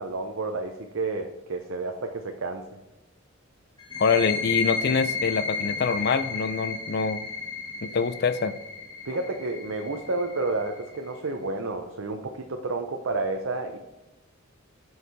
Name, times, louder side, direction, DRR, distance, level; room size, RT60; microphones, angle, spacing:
voice 1, 0.0-2.6 9.0-13.8, right 3 dB, 65° right, 4 dB, 0.6 m, -30 dB
sound 1, 3.8-11.2, left 5 dB, 20° left, 1.3 m, -32 dB
voice 2, 4.0-7.2 7.8-8.5, left 5 dB, 50° left, 13 dB, 0.4 m, -25 dB
8.0 x 4.8 x 4.1 m, 1.1 s
head